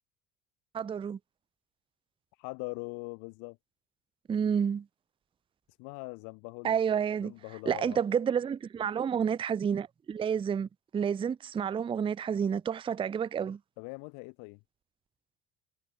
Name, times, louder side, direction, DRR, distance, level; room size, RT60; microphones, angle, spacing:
voice 1, 0.7-1.2 4.3-4.9 6.6-7.3 7.7-13.6, right 7 dB, 20° right, 0.4 m, -30 dB
voice 2, 2.3-3.6 5.8-6.8 7.2-8.0 13.8-14.6, left 30 dB, 80° left, 2.1 m, -41 dB
cardioid pair, 125°, 30 cm